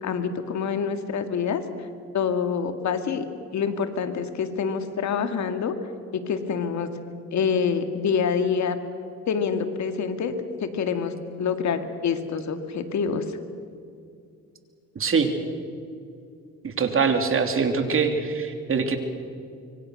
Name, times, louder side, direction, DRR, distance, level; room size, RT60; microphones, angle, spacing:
voice 1, 0.0-1.6 2.1-3.3 3.5-5.8 6.1-6.9 7.3-8.8 9.3-10.3 10.6-13.4, left 6 dB, 65° left, 8 dB, 2.2 m, -26 dB
voice 2, 14.9-15.3 16.6-19.0, right 5 dB, 45° right, 6 dB, 3.1 m, -23 dB
25.5 x 24.0 x 6.5 m, 2.4 s
cardioid pair, 90°, 30 cm